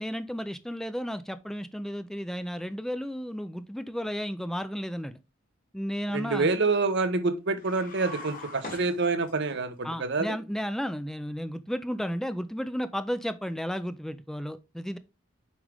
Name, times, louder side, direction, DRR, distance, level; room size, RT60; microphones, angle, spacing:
voice 1, 0.0-5.2 5.7-6.5 9.8-15.0, equal, ahead, 0.3 m, -33 dB
voice 2, 6.1-10.3, right 3 dB, 60° right, 1.0 m, -27 dB
sound 1, 7.6-9.6, left 3 dB, 45° left, 1.5 m, -42 dB
7.3 x 4.9 x 3.4 m
head